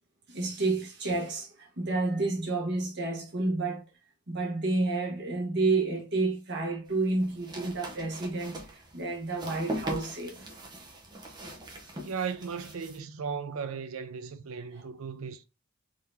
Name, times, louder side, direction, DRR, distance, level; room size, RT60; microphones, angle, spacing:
voice 1, 0.3-3.8 4.3-10.5, right 3 dB, 50° right, 1.3 m, -30 dB
sound 1, 6.9-13.0, right 1 dB, 20° right, 0.8 m, -41 dB
voice 2, 12.0-15.4, right 6 dB, 70° right, 0.5 m, -36 dB
3.8 x 2.9 x 3.3 m
head